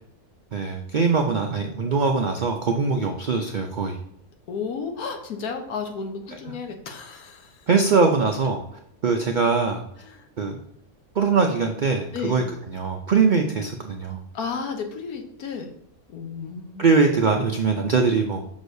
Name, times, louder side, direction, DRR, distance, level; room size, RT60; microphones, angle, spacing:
voice 1, 0.5-4.0 7.7-8.6 9.0-9.8 10.4-10.6 11.1-14.2 16.8-18.4, right 4 dB, 70° right, 3 dB, 0.4 m, -22 dB
voice 2, 4.5-7.7 10.0-10.3 12.1-12.4 14.3-15.7 16.1-16.9, left 5 dB, 90° left, 4 dB, 1.4 m, -33 dB
6.4 x 6.1 x 2.6 m, 0.73 s
omnidirectional pair, 1.5 m